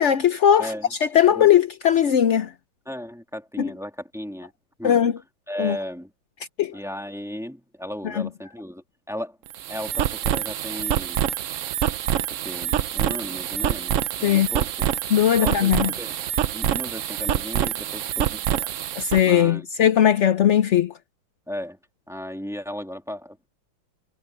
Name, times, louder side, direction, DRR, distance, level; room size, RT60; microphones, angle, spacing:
voice 1, 0.0-2.5 3.6-3.7 4.8-5.1 5.6-5.8 6.6-6.8 8.0-8.3 14.2-14.5 15.1-15.9 19.0-20.9, left 9 dB, 75° left, 0.6 m, -19 dB
voice 2, 0.6-0.9 1.3-1.5 2.9-4.5 4.8-5.0 5.5-6.1 6.7-9.4 9.7-11.2 12.4-14.9 15.4-16.2 16.5-18.7 19.2-19.7 21.5-21.8 22.1-23.5, equal, ahead, 1.9 m, -35 dB
sound 1, 9.5-19.2, right 11 dB, 85° right, 0.6 m, -26 dB
omnidirectional pair, 2.1 m